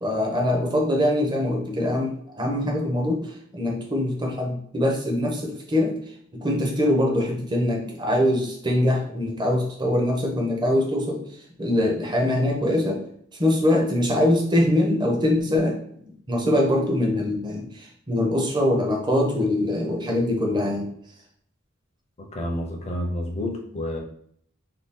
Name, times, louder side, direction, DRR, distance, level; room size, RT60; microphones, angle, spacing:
voice 1, 0.0-5.9 6.4-11.2 11.6-13.0 13.4-15.8 16.3-20.9, left 1 dB, 20° right, 0 dB, 0.6 m, -23 dB
voice 2, 22.2-24.0, left 1 dB, 30° left, 2 dB, 0.5 m, -29 dB
2.7 x 2.3 x 3.5 m, 0.65 s
head